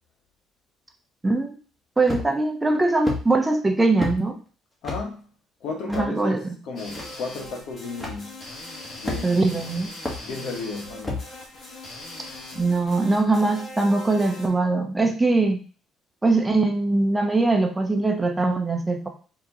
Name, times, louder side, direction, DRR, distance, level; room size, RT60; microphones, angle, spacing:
voice 1, 1.2-1.5 2.0-4.4 5.9-6.4 9.2-9.9 12.5-15.6 16.2-19.1, right 3 dB, 15° right, 0.9 m, -21 dB
sound 1, 2.1-2.5 3.0-3.2 4.0-4.2 4.8-5.0 5.9-6.1 6.9-7.0 8.0-8.2 9.0-9.5 10.0-10.2 11.0-11.3, left 2 dB, 10° left, 1.7 m, -29 dB
voice 2, 4.8-5.3 5.6-8.4 9.0-9.6 10.2-11.3, left 4 dB, 70° left, 1.3 m, -34 dB
sound 2, 6.8-14.5, left 1 dB, 55° left, 1.7 m, -40 dB
4.3 x 3.0 x 3.9 m
supercardioid pair, 70°, 0 cm